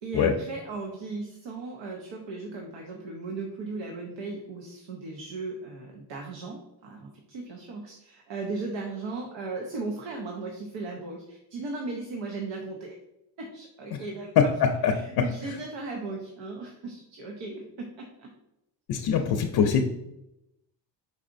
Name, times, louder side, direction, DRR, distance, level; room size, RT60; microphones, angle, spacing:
voice 1, 0.0-13.0 13.4-14.3 14.9-18.3 19.1-19.2, right 3 dB, 80° right, 1 dB, 0.8 m, -37 dB
voice 2, 14.4-15.5 18.9-19.9, left 6 dB, 55° left, 4 dB, 0.5 m, -23 dB
4.9 x 4.1 x 2.5 m, 0.88 s
cardioid pair, 145°, 44 cm